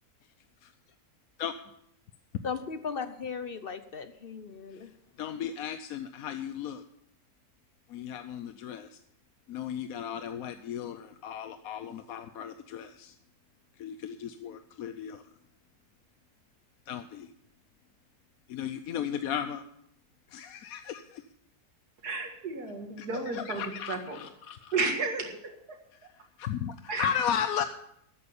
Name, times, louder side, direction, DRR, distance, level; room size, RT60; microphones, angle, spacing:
voice 1, 2.4-4.9, left 6 dB, 45° left, 11 dB, 0.8 m, -37 dB
voice 2, 5.2-6.8 7.9-9.0 9.5-13.2 13.8-15.2 16.9-17.3 18.5-19.6 20.3-21.2 23.0-23.1 23.3-24.7 26.0-27.6, left 8 dB, 70° left, 9 dB, 1.1 m, -35 dB
voice 3, 22.0-24.2 24.7-25.6 26.9-27.1, right 3 dB, 80° right, 4 dB, 2.4 m, -32 dB
13.5 x 8.8 x 7.0 m, 0.75 s
omnidirectional pair, 1.7 m